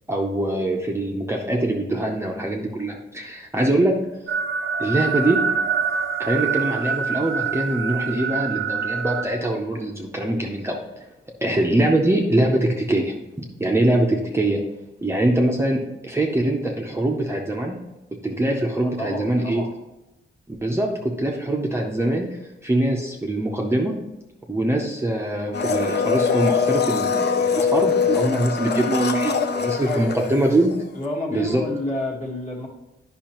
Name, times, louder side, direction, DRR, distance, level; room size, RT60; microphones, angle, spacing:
voice 1, 0.1-4.0 4.8-5.4 6.2-10.8 11.4-13.1 13.6-14.6 15.0-17.8 18.2-19.6 20.5-24.0 24.5-30.7 31.3-31.6, right 1 dB, 10° right, 0 dB, 0.6 m, -23 dB
sound 1, 4.3-9.3, right 6 dB, 75° right, 0.5 m, -25 dB
voice 2, 18.8-19.7 29.8-30.4 30.9-32.7, left 2 dB, 35° left, -1 dB, 1.4 m, -29 dB
Domestic sounds home sounds, 25.5-30.8 31.1-31.2, left 6 dB, 55° left, 0.6 m, -23 dB
10.5 x 5.5 x 2.9 m, 0.99 s
wide cardioid pair, 175°, 21 cm